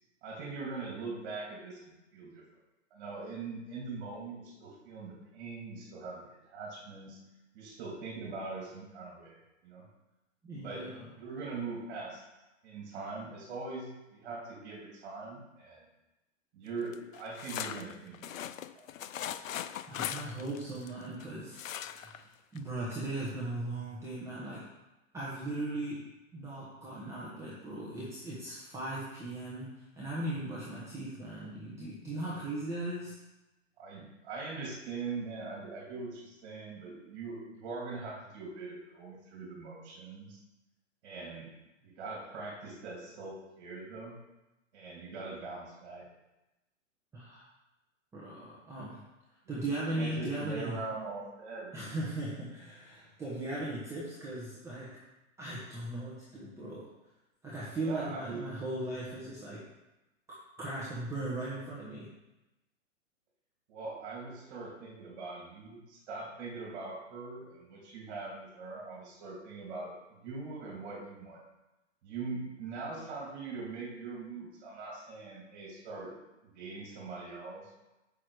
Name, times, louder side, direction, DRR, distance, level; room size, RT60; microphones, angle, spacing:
voice 1, 0.2-2.4 2.9-7.2 7.5-9.4 9.6-9.8 10.5-10.9 11.2-12.2 12.6-15.9 16.5-18.3 18.7-18.8 33.8-40.4 41.0-41.5 41.8-44.2 44.7-46.1 49.4-49.6 49.9-51.7 57.7-58.5 63.7-71.4 72.0-76.1 76.4-77.8, right 3 dB, 40° right, -2 dB, 2.7 m, -42 dB
voice 2, 10.4-11.1 19.9-24.6 25.1-33.1 47.1-47.4 48.1-49.0 49.5-50.8 51.7-55.0 55.4-56.9 57.4-59.6 60.3-62.1, right 1 dB, 5° right, -8 dB, 1.2 m, -38 dB
sound 1, 16.9-21.2 21.5-22.2 22.6-22.7 22.9-23.0, left 10 dB, 85° left, 0.6 m, -39 dB
8.4 x 6.3 x 4.8 m, 0.99 s
hypercardioid pair, 160°, 39 cm